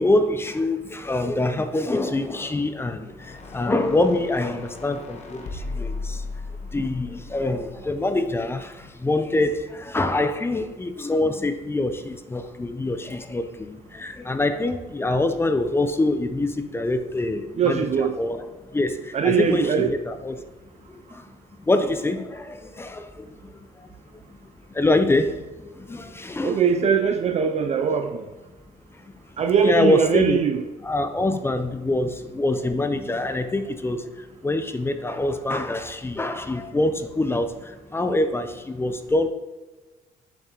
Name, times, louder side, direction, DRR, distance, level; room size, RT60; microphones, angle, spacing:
voice 1, 0.0-6.3 6.7-20.4 20.9-21.3 21.6-23.4 23.8-24.4 24.7-25.4 25.7-26.6 29.6-30.4 30.8-39.3, left 2 dB, 15° left, 9 dB, 0.5 m, -25 dB
sound 1, 3.1-8.4, left 3 dB, 40° left, 1.0 m, -36 dB
voice 2, 17.6-18.1 19.1-19.9 26.4-28.3 29.4-30.6, right 6 dB, 40° right, 7 dB, 0.5 m, -21 dB
7.3 x 5.6 x 2.9 m, 1.2 s
cardioid pair, 110°, 17 cm